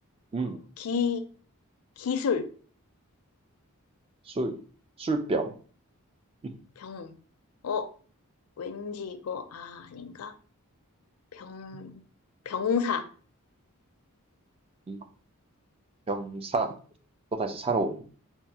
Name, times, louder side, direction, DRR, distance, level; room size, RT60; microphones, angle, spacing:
voice 1, 0.8-1.2 2.0-2.5 6.8-7.1 7.6-7.9 8.6-10.3 11.3-12.0 12.5-13.1, left 6 dB, 80° left, 9 dB, 0.4 m, -31 dB
voice 2, 4.3-4.6 5.0-5.5 14.9-15.0 16.1-16.7 17.3-18.1, right 3 dB, 25° right, 7 dB, 0.3 m, -29 dB
4.4 x 2.3 x 2.7 m, 0.42 s
head